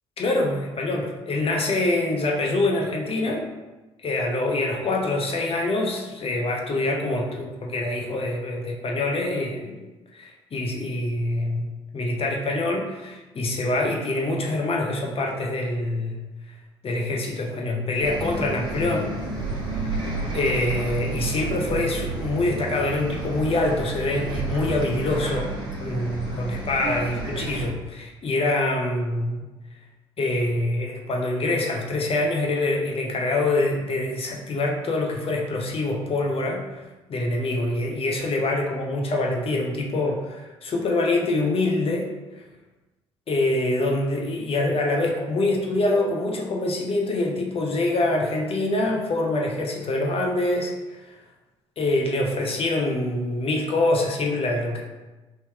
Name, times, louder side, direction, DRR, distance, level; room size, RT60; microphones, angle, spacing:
voice 1, 0.2-3.5 4.0-9.8 10.1-16.2 16.8-19.1 19.7-20.0 20.3-29.4 30.2-36.8 37.1-42.1 42.4-42.5 43.3-51.2 51.8-54.8, left 2 dB, 40° left, 0 dB, 0.9 m, -25 dB
Bus, 18.0-27.7, right 2 dB, 35° right, 1.2 m, -31 dB
3.7 x 2.8 x 3.5 m, 1.1 s
hypercardioid pair, 55°, 14 cm